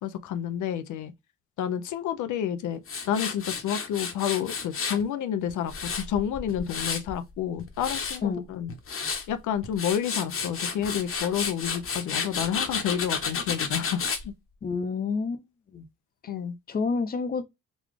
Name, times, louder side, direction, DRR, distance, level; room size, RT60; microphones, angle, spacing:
voice 1, 0.0-1.1 1.6-2.8 3.1-8.7 9.3-14.3 16.3-16.5, left 9 dB, 75° left, 0.6 m, -30 dB
Tools, 2.9-5.0 5.5-7.1 7.6-8.2 8.7-9.2 9.6-14.2, left 5 dB, 45° left, 1.0 m, -31 dB
voice 2, 14.6-15.4 15.7-15.9 16.2-16.3 16.7-17.4, left 4 dB, 30° left, 0.7 m, -28 dB
4.0 x 2.3 x 3.1 m
cardioid pair, 90°, 30 cm